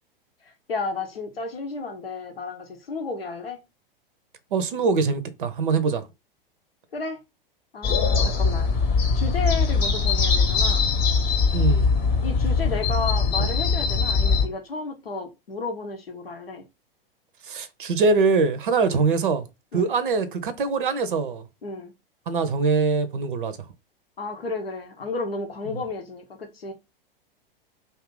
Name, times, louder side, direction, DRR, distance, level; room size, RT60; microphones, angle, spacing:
voice 1, 0.7-3.6 6.9-7.2 7.7-8.7 9.1-10.9 12.2-16.6 18.8-19.0 19.7-19.9 21.6-21.9 24.2-26.7, left 3 dB, 80° left, 0.7 m, -32 dB
voice 2, 4.5-6.0 8.2-8.3 11.5-11.9 17.4-19.5 19.7-21.5 22.3-23.6, right 4 dB, 60° right, 0.6 m, -23 dB
sound 1, 7.8-14.5, left 5 dB, 30° left, 0.8 m, -21 dB
2.6 x 2.4 x 3.6 m
figure-of-eight pair, 100°, 29 cm